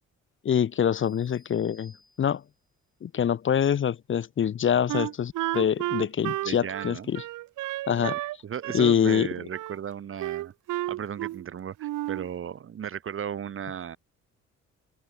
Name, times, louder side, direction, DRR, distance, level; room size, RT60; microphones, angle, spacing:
voice 1, 0.4-1.9 2.2-2.4 3.0-7.2 7.9-8.2 8.7-9.3, left 8 dB, 40° left, 0.7 m, -25 dB
sound 1, 1.0-2.7, left 2 dB, 15° left, 7.3 m, -59 dB
Wind instrument woodwind instrument, 4.9-8.4 8.6-9.8 10.2-11.5 11.8-12.3, right 16 dB, 90° right, 1.9 m, -32 dB
voice 2, 6.4-7.1 7.9-10.5 10.9-14.0, right 8 dB, 45° right, 1.0 m, -35 dB
open air
cardioid pair, 90°, 30 cm